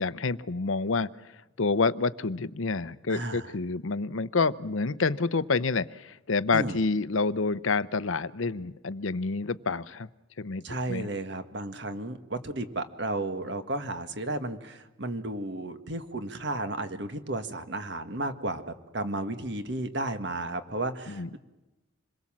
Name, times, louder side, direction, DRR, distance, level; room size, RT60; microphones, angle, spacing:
voice 1, 0.0-1.3 1.6-10.1 10.4-10.6 10.9-11.1 21.1-21.4, left 4 dB, 75° left, 16 dB, 0.7 m, -28 dB
voice 2, 3.1-3.5 6.5-6.8 10.6-21.4, right 2 dB, 55° right, 9 dB, 1.7 m, -33 dB
27.0 x 21.5 x 7.5 m, 1.1 s
head